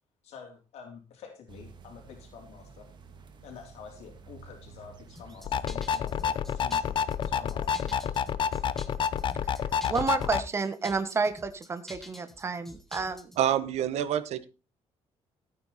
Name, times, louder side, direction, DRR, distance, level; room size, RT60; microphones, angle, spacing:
voice 1, 0.2-2.9 3.4-8.2, left 6 dB, 75° left, 2 dB, 3.3 m, -48 dB
sound 1, 1.5-5.8, right 5 dB, 45° right, 1.9 m, -51 dB
sound 2, 5.1-13.4, left 1 dB, 5° left, 1.6 m, -48 dB
sound 3, 5.4-10.4, left 8 dB, 45° left, 0.8 m, -29 dB
voice 2, 9.9-13.3, right 4 dB, 25° right, 10 dB, 1.3 m, -30 dB
voice 3, 13.4-14.5, right 10 dB, 75° right, 14 dB, 1.2 m, -27 dB
15.0 x 9.0 x 4.2 m, 0.31 s
cardioid pair, 155°, 11 cm